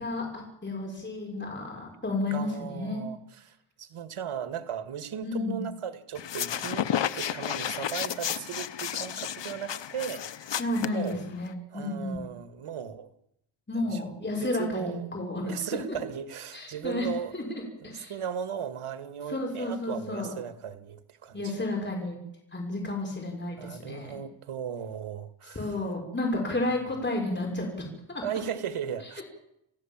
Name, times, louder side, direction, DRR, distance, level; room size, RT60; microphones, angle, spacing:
voice 1, 0.0-3.0 5.2-5.6 10.6-11.5 11.7-12.2 13.7-15.5 16.5-17.1 17.3-18.1 19.3-20.3 21.3-22.2 22.5-24.2 25.5-27.7 28.1-28.2, left 2 dB, 20° left, 6.3 m, -32 dB
voice 2, 2.3-6.9 7.1-10.6 10.9-11.3 11.7-13.1 13.8-14.0 14.4-15.1 15.4-17.4 17.8-21.5 23.6-25.8 28.2-29.2, right 8 dB, 85° right, 2.1 m, -37 dB
sound 1, 6.2-11.5, left 9 dB, 60° left, 1.1 m, -32 dB
28.0 x 15.5 x 7.5 m
wide cardioid pair, 120°, 49 cm